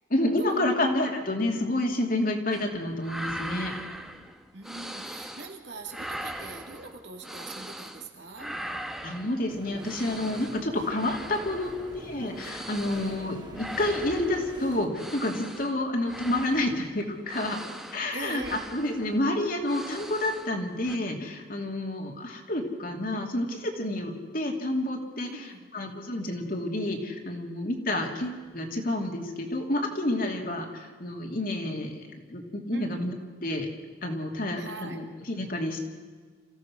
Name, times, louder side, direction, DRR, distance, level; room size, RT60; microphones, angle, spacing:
voice 1, 0.1-3.7 9.0-17.6 17.9-33.7 34.0-35.9, left 1 dB, 50° left, 2 dB, 2.9 m, -29 dB
sound 1, 2.5-2.7 3.0-5.6 5.9-8.1 8.4-20.6 20.8-21.0, right 1 dB, ahead, 1.1 m, -40 dB
voice 2, 4.5-8.6 18.1-18.6 25.2-25.7 32.7-33.0 34.6-35.1, right 3 dB, 65° right, 3 dB, 2.8 m, -42 dB
sound 2, 9.5-14.9, right 1 dB, 25° right, 2.3 m, -45 dB
27.5 x 16.0 x 6.2 m, 1.5 s
head